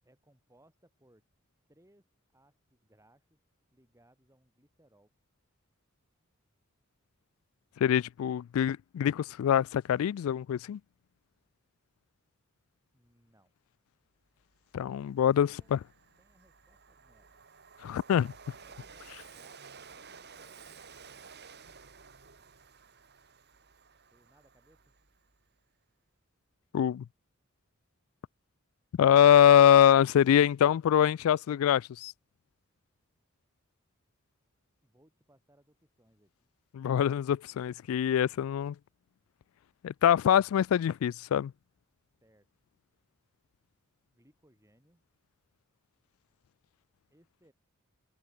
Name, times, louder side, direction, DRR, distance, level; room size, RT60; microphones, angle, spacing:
voice 1, 0.0-1.2 1.7-3.4 3.7-5.1 12.9-13.5 15.0-15.7 16.2-17.4 18.6-20.7 24.1-24.9 34.8-36.5 42.2-42.6 44.1-45.0 47.1-47.5, right 1 dB, 15° right, 7.9 m, -66 dB
voice 2, 7.8-10.8 14.7-15.8 17.8-18.3 26.7-27.0 29.0-32.1 36.7-38.8 39.8-41.5, left 9 dB, 75° left, 0.3 m, -24 dB
Train, 14.5-14.6 15.0-25.4, right 5 dB, 55° right, 5.3 m, -53 dB
head